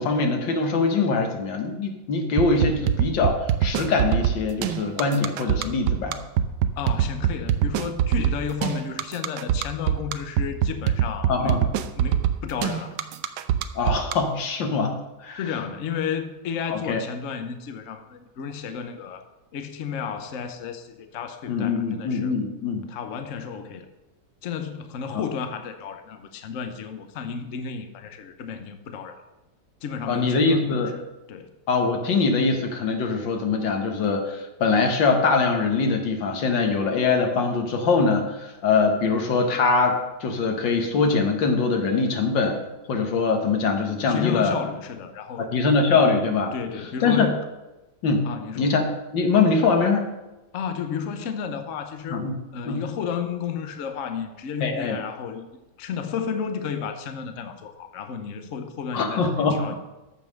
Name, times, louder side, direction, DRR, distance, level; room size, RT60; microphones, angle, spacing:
voice 1, 0.0-6.2 11.3-11.6 13.8-15.0 15.2-15.4 16.7-17.0 21.5-22.8 25.1-25.2 30.1-30.9 31.7-44.6 45.4-46.5 47.0-47.3 48.0-48.3 48.6-48.8 49.1-50.1 52.1-52.4 52.7-52.8 54.6-55.0 58.9-59.6, left 4 dB, 85° left, 4 dB, 2.1 m, -23 dB
sound 1, 2.4-14.1, right 10 dB, 70° right, 1.2 m, -23 dB
voice 2, 6.8-11.7 12.0-13.0 15.4-19.2 19.5-22.4 22.9-23.9 24.4-29.2 29.8-30.8 31.3-31.5 44.1-45.5 46.5-47.4 48.2-48.8 50.5-52.3 52.5-55.5 55.8-59.7, left 7 dB, 50° left, 7 dB, 1.1 m, -32 dB
14.0 x 5.5 x 6.4 m, 1.0 s
omnidirectional pair, 2.0 m